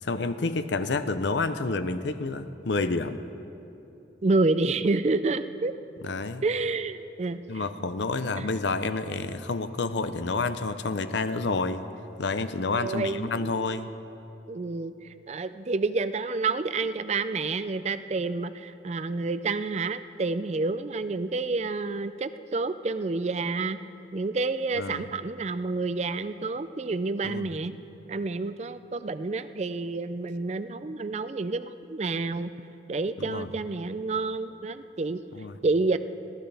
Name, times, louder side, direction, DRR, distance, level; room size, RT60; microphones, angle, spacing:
voice 1, 0.0-3.2 6.0-6.4 7.5-11.8 12.2-13.9 24.8-25.0 27.2-27.5 33.2-33.5 35.3-35.6, left 3 dB, 75° left, 11 dB, 0.7 m, -29 dB
voice 2, 4.2-5.7 6.4-7.6 8.4-8.5 12.7-13.8 14.5-14.9 15.3-23.8 24.1-27.8 28.1-32.5 32.9-35.2 35.6-36.0, right 3 dB, 35° right, 12 dB, 0.4 m, -29 dB
21.0 x 16.0 x 3.4 m, 2.9 s
head